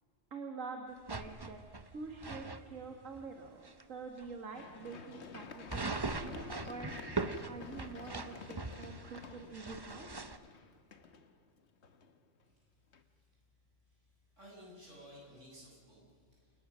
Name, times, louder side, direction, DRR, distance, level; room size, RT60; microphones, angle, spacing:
voice 1, 0.3-1.6 1.9-6.9 7.5-10.1, right 4 dB, 85° right, 4 dB, 2.2 m, -46 dB
sound 1, 1.1-2.6 3.1-3.2 3.6-3.8 4.2-4.3 5.7-10.4, right 3 dB, 20° right, 0.9 m, -40 dB
Run, 4.5-12.4 12.9-13.0, left 5 dB, 60° left, 1.6 m, -51 dB
voice 2, 14.4-16.5, equal, 70° right, -3 dB, 8.5 m, -55 dB
28.5 x 20.0 x 6.3 m, 2.1 s
omnidirectional pair, 1.3 m